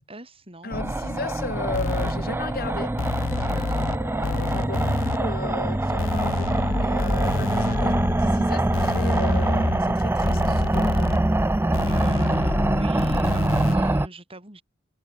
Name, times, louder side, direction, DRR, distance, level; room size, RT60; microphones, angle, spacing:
voice 1, 0.0-1.2 3.4-4.0 11.9-14.6, right 1 dB, 30° right, 6.6 m, -40 dB
voice 2, 0.6-3.0 3.4-11.2, left 2 dB, 50° left, 3.6 m, -35 dB
sound 1, 0.7-14.1, right 1 dB, 10° right, 0.4 m, -24 dB
sound 2, 1.7-2.1 3.0-4.0 4.2-5.2 6.0-8.1 8.7-9.8 10.2-11.2 11.7-13.7, left 5 dB, 90° left, 0.5 m, -29 dB
head